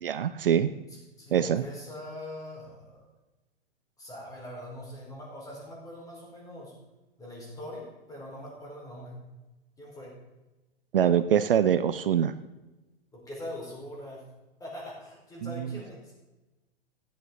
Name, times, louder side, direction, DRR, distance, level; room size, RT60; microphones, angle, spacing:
voice 1, 0.0-0.7 1.3-1.6 10.9-12.3 15.4-15.5, right 9 dB, 60° right, 13 dB, 0.6 m, -24 dB
voice 2, 0.9-3.0 4.0-6.7 7.2-9.2 9.8-10.1 13.1-14.2 14.6-16.1, left 1 dB, 10° left, -3 dB, 4.4 m, -42 dB
15.0 x 8.9 x 3.9 m, 1.1 s
figure-of-eight pair, 105°, 30 cm